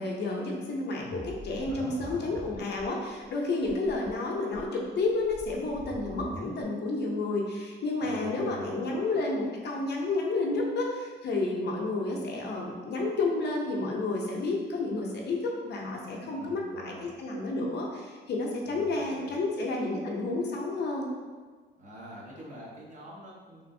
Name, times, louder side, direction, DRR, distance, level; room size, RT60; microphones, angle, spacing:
voice 1, 0.0-16.9 17.2-21.1, left 2 dB, 60° left, -1 dB, 0.6 m, -31 dB
sound 1, 1.0-2.9 3.2-3.3 3.6-4.1 4.5-6.6, equal, 5° right, 0.8 m, -44 dB
voice 2, 1.6-2.3 8.0-8.8 16.2-17.1 18.6-19.4 21.8-23.7, equal, 40° right, -5 dB, 1.0 m, -45 dB
3.4 x 2.5 x 2.6 m, 1.4 s
cardioid pair, 90°, 20 cm